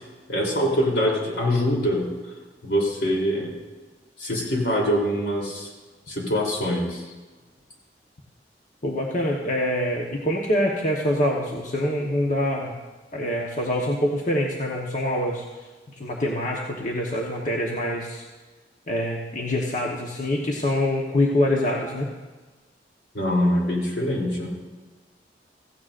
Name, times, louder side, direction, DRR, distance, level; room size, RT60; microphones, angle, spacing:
voice 1, 0.3-2.1 2.6-3.5 4.2-5.7 6.1-7.0 23.1-24.5, equal, 75° left, -2 dB, 3.4 m, -24 dB
voice 2, 8.8-12.7 13.1-15.4 16.0-18.2 18.9-22.1, left 1 dB, 45° left, -2 dB, 1.2 m, -25 dB
16.5 x 15.5 x 2.6 m, 1.3 s
head